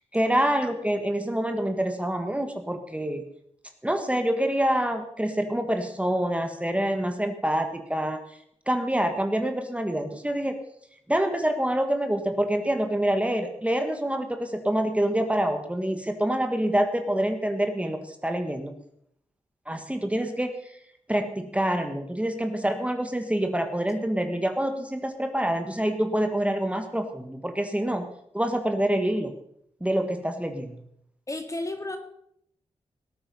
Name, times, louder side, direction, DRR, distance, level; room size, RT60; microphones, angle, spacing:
voice 1, 0.1-3.2 3.8-8.2 8.7-10.6 11.1-18.7 19.7-20.5 21.1-28.1 28.3-29.3 29.8-30.7, right 1 dB, 10° right, 5 dB, 1.7 m, -26 dB
voice 2, 31.3-32.0, left 2 dB, 25° left, 6 dB, 2.1 m, -33 dB
18.5 x 8.7 x 5.5 m, 0.73 s
cardioid pair, 60°, 12 cm